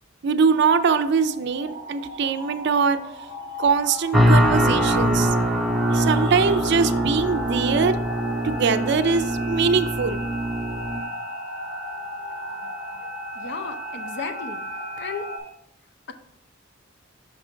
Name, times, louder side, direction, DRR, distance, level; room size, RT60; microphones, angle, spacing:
voice 1, 0.2-3.0 3.6-5.4 5.9-8.0 8.4-10.2, right 5 dB, 60° right, 10 dB, 0.5 m, -22 dB
sound 1, 1.1-15.4, equal, 85° left, 1.4 m, -35 dB
sound 2, 4.1-11.0, equal, ahead, 0.6 m, -22 dB
voice 2, 13.3-14.6 15.0-15.3, left 5 dB, 60° left, 8 dB, 0.6 m, -34 dB
5.9 x 5.0 x 3.7 m, 0.77 s
head